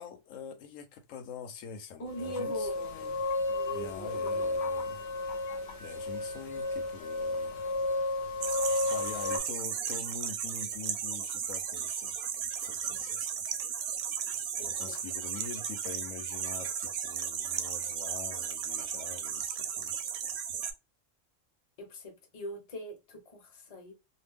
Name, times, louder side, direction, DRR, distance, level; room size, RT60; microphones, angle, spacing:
voice 1, 0.0-3.3 3.7-5.0 5.8-7.6 8.9-12.3 12.6-13.3 14.6-19.9, left 6 dB, 90° left, 1.0 m, -45 dB
voice 2, 2.0-2.8 3.5-4.6 14.6-15.0 21.8-23.9, equal, 35° left, 0.7 m, -42 dB
sound 1, 2.1-9.4, left 2 dB, 65° left, 0.8 m, -32 dB
sound 2, 8.4-20.7, right 8 dB, 65° right, 0.7 m, -35 dB
2.4 x 2.0 x 3.4 m
omnidirectional pair, 1.3 m